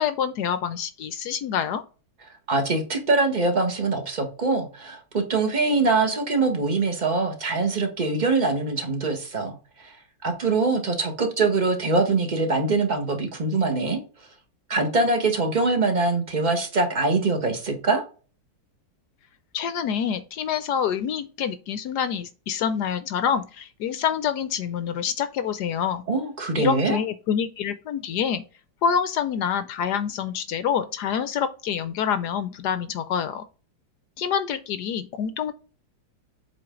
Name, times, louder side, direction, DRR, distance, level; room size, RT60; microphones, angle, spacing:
voice 1, 0.0-1.8 19.5-26.0 26.6-28.4 28.8-33.4 34.2-35.5, left 8 dB, 70° left, 1.1 m, -26 dB
voice 2, 2.5-9.9 10.2-14.0 14.7-18.0 26.1-27.0, right 3 dB, 25° right, 1.4 m, -23 dB
7.7 x 4.2 x 3.8 m
omnidirectional pair, 2.0 m